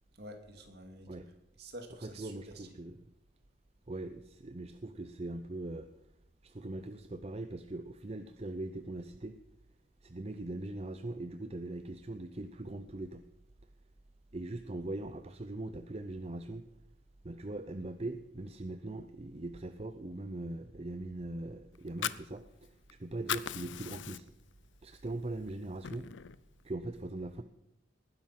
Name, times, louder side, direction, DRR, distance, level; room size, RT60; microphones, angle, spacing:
voice 1, 0.1-1.2 1.6-2.8, right 1 dB, 55° right, 5 dB, 2.5 m, -49 dB
voice 2, 2.0-3.1 3.9-5.9 6.4-9.3 10.0-13.2 14.3-16.6 17.2-24.3 24.8-26.1 26.6-27.4, right 2 dB, 35° right, 9 dB, 0.6 m, -41 dB
Fire, 21.7-22.9 23.2-24.5 24.9-25.1 25.5-26.4, left 9 dB, 70° left, 0.6 m, -38 dB
19.5 x 10.0 x 5.9 m, 0.83 s
head